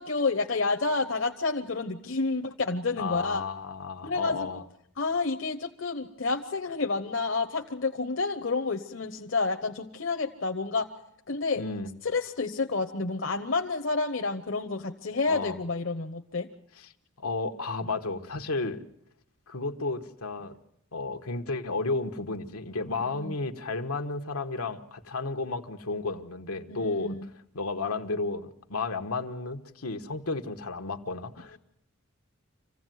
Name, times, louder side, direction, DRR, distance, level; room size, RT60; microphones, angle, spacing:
voice 1, 0.0-3.4 4.0-4.5 5.0-10.9 11.3-11.6 12.0-16.5 23.0-23.3 26.7-27.3, left 3 dB, 60° left, 5 dB, 1.0 m, -29 dB
voice 2, 3.0-4.6 11.6-11.9 15.3-15.6 16.8-16.9 17.2-18.8 19.5-20.6 20.9-27.2 27.5-31.6, left 3 dB, 90° left, 5 dB, 1.4 m, -33 dB
26.0 x 16.0 x 9.3 m, 0.73 s
head